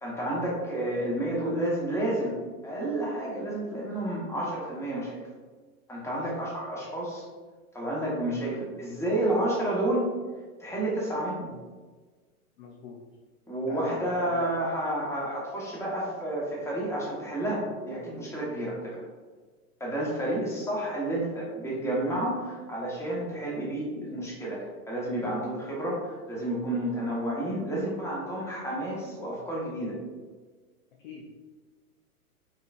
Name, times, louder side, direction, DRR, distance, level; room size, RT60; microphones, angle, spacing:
voice 1, 0.0-2.4 2.6-5.2 5.9-7.2 7.7-10.1 10.6-11.5 13.5-19.0 19.8-30.0, right 1 dB, 5° left, -5 dB, 1.1 m, -30 dB
voice 2, 12.6-13.1 13.6-14.6 20.0-20.4 31.0-31.5, left 3 dB, 35° left, -1 dB, 0.4 m, -42 dB
5.6 x 3.1 x 2.5 m, 1.4 s
hypercardioid pair, 115°, 45 cm